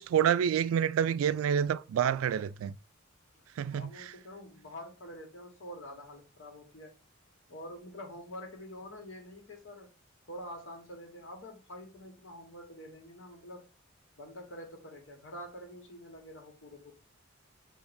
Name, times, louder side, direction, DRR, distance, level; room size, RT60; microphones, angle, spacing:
voice 1, 0.0-2.8 3.6-4.1, right 8 dB, 90° right, 0.3 m, -28 dB
voice 2, 3.7-6.9 7.5-9.9 10.3-13.7 14.2-16.9, equal, 65° left, 1.3 m, -46 dB
6.9 x 2.5 x 2.6 m
head